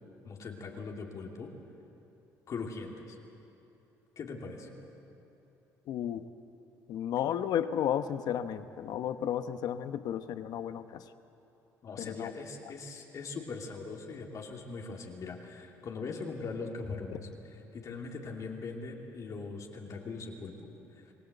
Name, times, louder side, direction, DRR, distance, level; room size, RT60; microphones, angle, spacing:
voice 1, 0.2-1.5 2.5-3.2 4.2-4.7 11.8-17.3 17.7-21.1, left 4 dB, 55° left, 0 dB, 3.0 m, -41 dB
voice 2, 5.9-6.3 6.9-11.1 12.0-12.3, left 9 dB, 70° left, 11 dB, 1.0 m, -33 dB
28.0 x 17.5 x 8.1 m, 2.9 s
cardioid pair, 85°, 7 cm